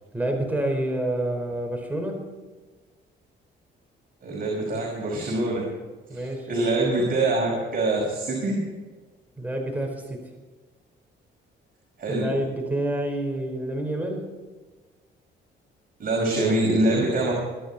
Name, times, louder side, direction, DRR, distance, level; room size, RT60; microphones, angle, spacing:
voice 1, 0.1-2.3 6.1-6.5 9.4-10.3 12.1-14.3, right 1 dB, 10° right, 1 dB, 4.6 m, -28 dB
voice 2, 4.2-5.7 6.1-8.6 12.0-12.3 16.0-17.3, right 2 dB, 45° right, -2 dB, 5.4 m, -24 dB
24.0 x 10.5 x 4.4 m, 1.3 s
cardioid pair, 90°, 20 cm